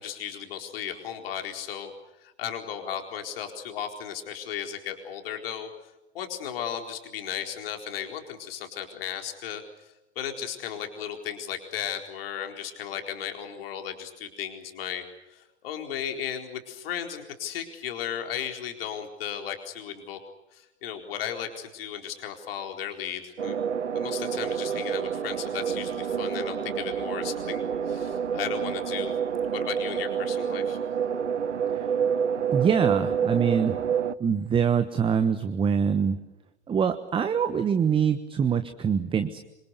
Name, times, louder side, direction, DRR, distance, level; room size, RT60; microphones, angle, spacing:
voice 1, 0.0-1.9 2.2-5.7 6.1-9.6 10.2-20.2 20.5-23.6 23.9-29.1 29.5-30.8, left 9 dB, 55° left, 4 dB, 4.4 m, -35 dB
sound 1, 23.4-34.1, right 7 dB, 80° right, 1.0 m, -28 dB
voice 2, 32.5-33.8 34.2-36.2 36.7-39.4, right 7 dB, 15° right, 10 dB, 1.2 m, -24 dB
26.5 x 26.0 x 6.9 m, 0.97 s
figure-of-eight pair, 100°, 34 cm